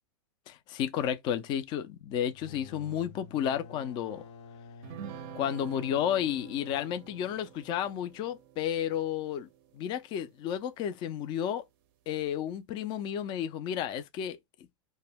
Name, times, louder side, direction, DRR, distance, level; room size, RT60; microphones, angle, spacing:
voice 1, 0.5-4.2 5.3-9.5 9.7-11.6 12.1-14.4, left 9 dB, 30° left, 0.4 m, -32 dB
sound 1, 2.2-7.8, left 4 dB, 65° left, 0.7 m, -51 dB
sound 2, 4.8-10.5, right 9 dB, 50° right, 0.4 m, -48 dB
2.1 x 2.1 x 3.3 m
hypercardioid pair, 130°, 16 cm